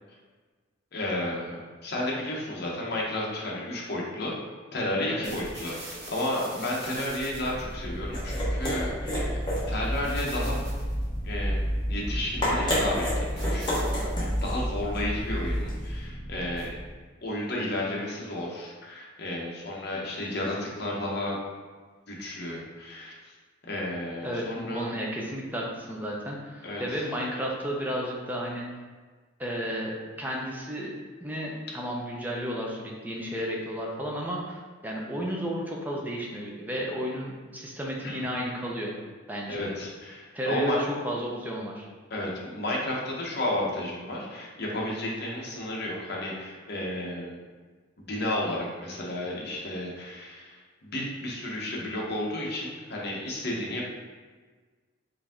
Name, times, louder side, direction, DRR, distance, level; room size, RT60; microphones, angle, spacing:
voice 1, 0.9-4.3 4.7-9.4 9.7-10.6 11.2-16.7 17.2-21.4 22.1-23.3 23.7-24.9 26.6-27.1 38.0-38.2 39.5-40.8 42.1-47.4 48.0-50.6 50.8-53.8, left 1 dB, 50° left, -3 dB, 0.9 m, -32 dB
sound 1, 5.2-17.0, equal, 55° right, 1.0 m, -40 dB
sound 2, 7.8-16.0, equal, 20° left, 1.2 m, -29 dB
voice 2, 24.2-28.7 29.4-30.9 31.2-38.9 39.3-39.6 40.3-41.9, equal, 10° right, -2 dB, 0.6 m, -32 dB
4.9 x 2.7 x 3.6 m, 1.4 s
head